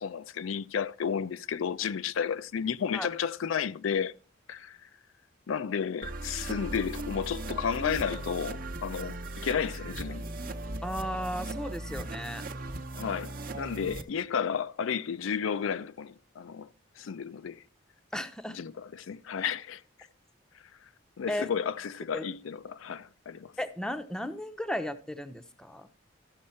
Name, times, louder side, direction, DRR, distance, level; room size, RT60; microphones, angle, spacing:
voice 1, 0.0-4.1 4.5-4.9 5.5-10.3 12.9-16.7 17.0-17.6 18.5-19.8 21.2-23.5, left 7 dB, 80° left, 0.4 m, -32 dB
sound 1, 6.0-14.0, right 2 dB, 45° right, 0.8 m, -38 dB
voice 2, 10.8-12.5 18.1-18.6 21.3-21.5 22.1-22.2 23.6-25.9, equal, 5° left, 0.6 m, -35 dB
14.0 x 6.4 x 4.3 m
head